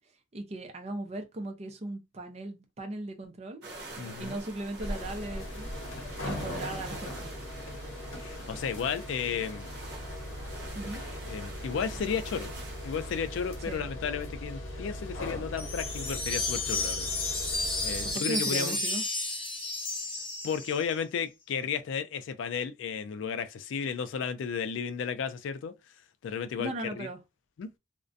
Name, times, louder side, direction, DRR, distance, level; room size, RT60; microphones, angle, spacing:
voice 1, 0.3-3.6 4.0-5.7 6.2-7.3 10.7-11.0 13.7-13.9 18.0-19.0 26.6-27.2, right 1 dB, 35° right, 0.5 m, -38 dB
sound 1, 3.6-13.8, right 2 dB, 55° right, 0.9 m, -46 dB
voice 2, 4.0-4.4 8.2-9.8 11.3-12.5 12.8-17.1 17.8-18.8 20.4-25.7 26.2-27.1 27.6-27.7, left 6 dB, 70° left, 0.3 m, -33 dB
sound 2, 4.8-18.1, left 1 dB, 85° left, 0.7 m, -39 dB
sound 3, 15.6-20.9, left 2 dB, 25° left, 0.7 m, -32 dB
2.4 x 2.1 x 2.5 m
head